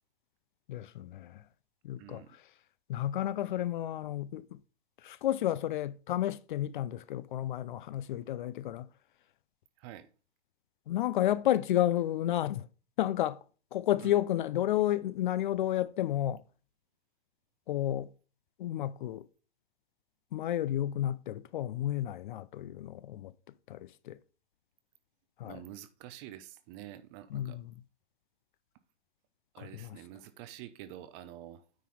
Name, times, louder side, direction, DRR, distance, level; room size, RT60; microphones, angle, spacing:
voice 1, 0.7-1.4 1.8-2.4 2.9-4.6 5.0-8.9 10.9-12.7 13.0-13.4 13.7-16.4 17.7-18.1 18.6-19.3 20.3-23.3 23.7-24.2 25.4-25.6 27.3-27.7 29.6-30.0, left 12 dB, 45° left, 0.5 m, -31 dB
voice 2, 2.0-2.4 9.8-10.1 14.0-14.2 25.4-27.6 29.5-31.6, right 12 dB, 25° right, 0.5 m, -47 dB
9.5 x 4.1 x 4.8 m
hypercardioid pair, 135°, 35 cm